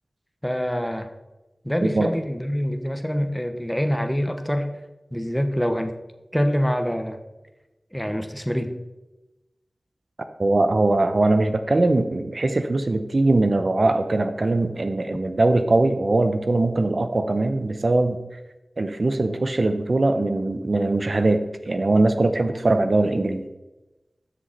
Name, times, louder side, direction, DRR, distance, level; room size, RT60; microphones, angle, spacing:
voice 1, 0.4-1.1 1.6-4.8 5.1-5.9 6.3-7.2 7.9-8.7, equal, 5° left, 7 dB, 1.1 m, -25 dB
voice 2, 10.4-18.2 18.8-23.4, right 2 dB, 60° right, 8 dB, 0.7 m, -21 dB
12.5 x 6.7 x 4.1 m, 1.0 s
wide cardioid pair, 50°, 0 cm